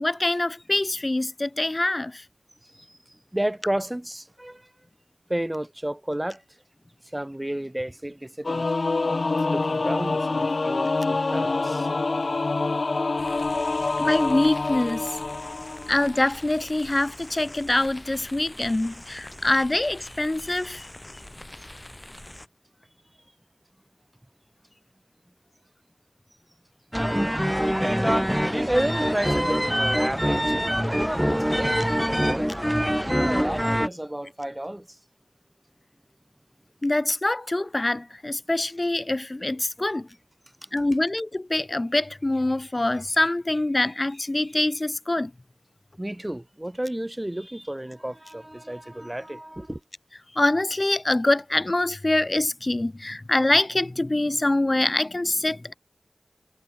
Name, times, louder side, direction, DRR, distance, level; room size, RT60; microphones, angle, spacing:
voice 1, 0.0-2.2 14.0-15.1 15.9-20.9 36.8-40.1 40.7-45.3 50.3-55.7, left 2 dB, 40° left, 1.6 m, -24 dB
voice 2, 2.6-4.7 5.3-6.4 7.1-8.7 9.5-11.9 28.7-32.5 33.3-34.9 46.0-49.8, right 1 dB, 20° right, 2.7 m, -32 dB
Singing / Musical instrument, 8.4-16.2, left 3 dB, 80° left, 0.7 m, -26 dB
sound 1, 13.2-22.5, left 1 dB, 20° left, 2.5 m, -44 dB
sound 2, 26.9-33.9, equal, 5° right, 0.9 m, -24 dB
wide cardioid pair, 50°, 0 cm